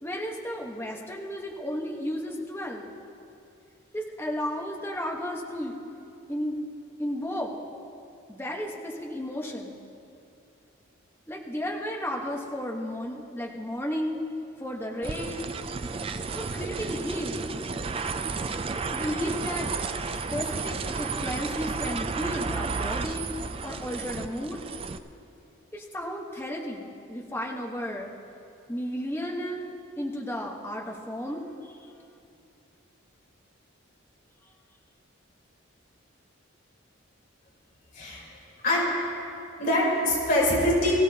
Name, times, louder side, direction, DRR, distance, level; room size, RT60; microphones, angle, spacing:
voice 1, 0.0-2.8 3.9-5.8 6.3-6.6 7.0-7.5 8.3-9.8 11.3-14.2 14.6-15.5 16.3-17.4 18.7-19.7 20.3-23.3 23.6-24.6 25.7-28.1 28.7-31.7, equal, 10° left, -1 dB, 1.2 m, -33 dB
sound 1, 15.0-25.0, right 4 dB, 25° right, 0.4 m, -32 dB
voice 2, 39.6-40.9, left 1 dB, 45° left, -5 dB, 3.9 m, -23 dB
23.0 x 15.5 x 2.9 m, 2.7 s
head